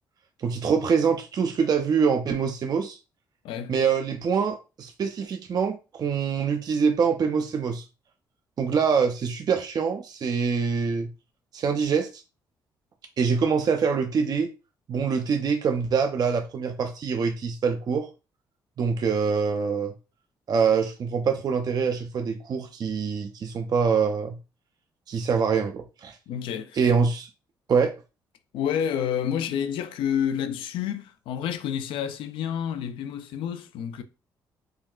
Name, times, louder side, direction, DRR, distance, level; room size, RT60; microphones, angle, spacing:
voice 1, 0.4-3.0 3.7-7.8 8.6-11.1 11.5-12.2 13.2-14.5 14.9-18.1 18.8-19.9 20.5-24.4 25.1-26.2 26.7-27.3 27.7-27.9, right 6 dB, 50° right, 0.4 m, -24 dB
voice 2, 26.3-26.9 28.5-34.0, left 9 dB, 80° left, 0.4 m, -29 dB
3.7 x 2.1 x 2.3 m
supercardioid pair, 60°, 9 cm